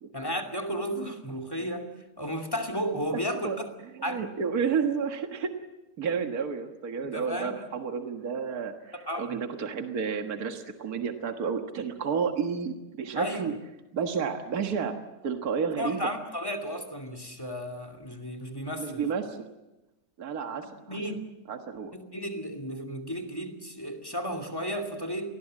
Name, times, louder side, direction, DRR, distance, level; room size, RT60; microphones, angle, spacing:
voice 1, 0.1-1.9 2.2-3.7 4.0-4.2 7.1-7.5 8.9-9.4 13.2-13.5 15.8-19.1 20.9-21.2 21.9-25.3, equal, 15° left, 8 dB, 2.5 m, -33 dB
voice 2, 3.1-3.6 3.8-5.5 6.0-13.5 13.9-14.9 15.2-16.1 18.8-19.5 20.2-21.0 21.5-21.9, right 6 dB, 60° right, 5 dB, 2.0 m, -31 dB
27.5 x 20.0 x 7.6 m, 0.99 s
omnidirectional pair, 1.8 m